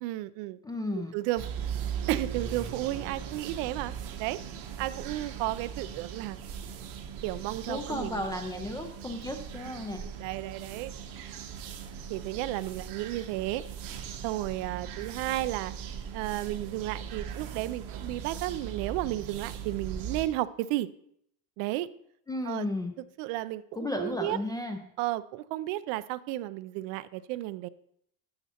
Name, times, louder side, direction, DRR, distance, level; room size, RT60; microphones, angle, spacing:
voice 1, 0.0-0.6 0.9-1.4 2.1-3.9 4.2-4.4 4.8-6.4 7.2-8.2 10.0-10.9 12.1-13.6 14.2-15.7 16.1-20.9 21.6-21.9 22.4-22.7 23.2-23.6 24.0-24.4 25.0-27.7, right 16 dB, 65° right, 16 dB, 0.5 m, -33 dB
voice 2, 0.6-1.1 7.7-10.0 22.3-22.9 23.7-24.8, left 1 dB, 10° left, 4 dB, 0.3 m, -34 dB
sound 1, 1.4-20.3, right 7 dB, 50° right, 0.9 m, -39 dB
12.5 x 6.8 x 2.8 m, 0.71 s
cardioid pair, 145°, 45 cm